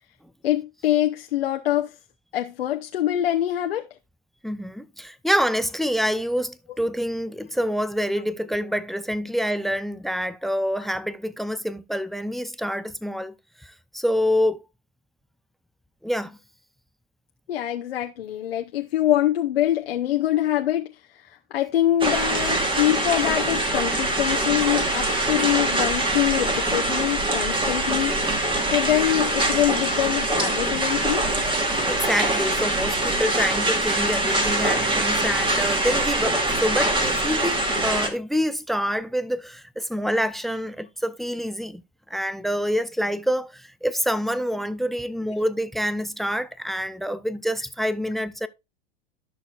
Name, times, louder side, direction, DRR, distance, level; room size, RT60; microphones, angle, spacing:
voice 1, 0.4-1.9 2.3-3.9 17.5-20.9 21.5-28.2 28.7-31.3, left 13 dB, 85° left, 0.9 m, -24 dB
voice 2, 4.4-13.3 13.6-14.6 16.0-16.4 31.8-41.8 42.1-48.5, equal, ahead, 0.5 m, -26 dB
sound 1, 22.0-38.1, right 1 dB, 15° right, 2.2 m, -23 dB
13.0 x 6.4 x 2.4 m
hypercardioid pair, 110°, 29 cm